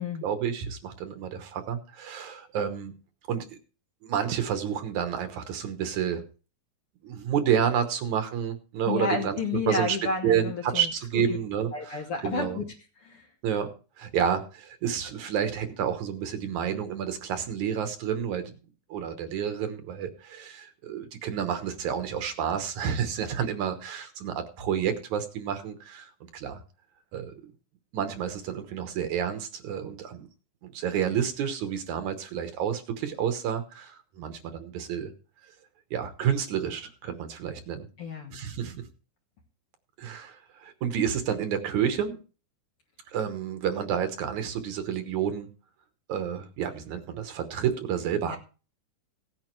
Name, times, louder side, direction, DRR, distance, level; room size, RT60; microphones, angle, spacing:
voice 1, 0.2-2.9 3.3-3.6 4.0-6.2 7.0-9.4 9.7-10.0 10.2-12.6 13.4-13.7 14.0-18.5 18.9-26.6 27.1-27.5 27.9-30.3 30.6-35.1 35.9-37.9 38.3-38.8 40.0-42.2 43.1-45.5 46.1-48.4, right 8 dB, 70° right, 8 dB, 2.3 m, -30 dB
voice 2, 8.9-11.4 11.7-12.7 13.0-13.3 38.0-38.4 48.2-48.4, left 4 dB, 55° left, 1 dB, 1.8 m, -31 dB
17.0 x 9.0 x 3.2 m, 0.35 s
omnidirectional pair, 3.8 m